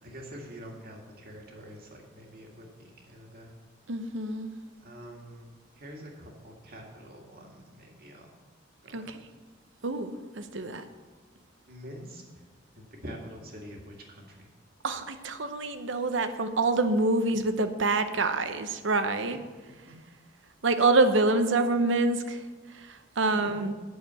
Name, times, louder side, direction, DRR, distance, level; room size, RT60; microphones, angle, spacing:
voice 1, 0.0-3.5 4.8-5.5 5.8-8.3 8.8-9.2 11.7-12.4 12.8-14.5 19.9-20.0 23.4-23.5, equal, 50° right, 0 dB, 2.1 m, -46 dB
voice 2, 3.9-4.5 8.9-9.2 9.8-10.8 14.8-19.4 20.6-22.4 22.7-23.7, right 3 dB, 70° right, 9 dB, 0.8 m, -26 dB
8.6 x 6.7 x 8.2 m, 1.3 s
head